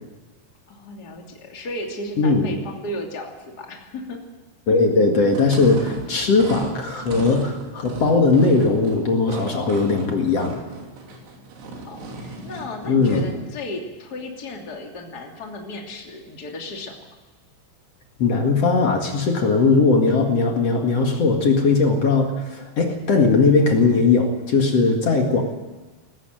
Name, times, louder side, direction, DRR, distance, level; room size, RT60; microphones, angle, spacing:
voice 1, 0.7-4.2 11.8-17.0, left 1 dB, 25° left, 1 dB, 2.5 m, -34 dB
voice 2, 4.7-10.6 12.9-13.3 18.2-25.4, left 4 dB, 50° left, 2 dB, 2.2 m, -19 dB
sound 1, 5.3-13.4, right 2 dB, 85° right, 5.5 m, -35 dB
19.5 x 15.0 x 9.2 m, 1.2 s
omnidirectional pair, 5.4 m